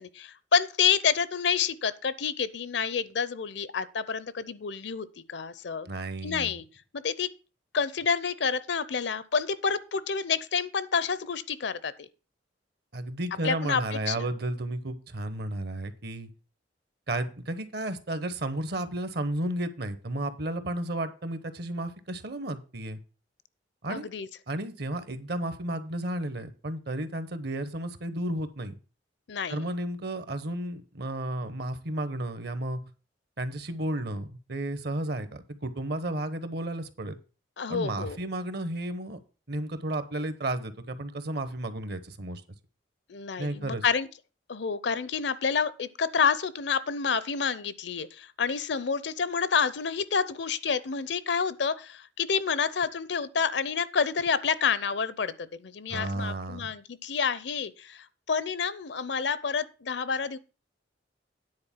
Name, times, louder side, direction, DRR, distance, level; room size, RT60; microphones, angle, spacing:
voice 1, 0.0-5.9 6.2-6.6 6.9-7.3 7.7-11.9 13.4-14.3 23.9-24.3 29.3-29.6 37.6-38.2 43.1-44.1 44.5-60.4, left 6 dB, 65° left, 0.6 m, -29 dB
voice 2, 5.8-6.6 12.9-16.3 17.1-23.0 23.8-24.1 24.5-28.8 29.5-32.8 33.4-37.2 37.7-39.2 39.5-42.4 43.4-43.8 55.9-56.7, right 1 dB, 60° right, 1.0 m, -33 dB
9.7 x 4.2 x 7.2 m
head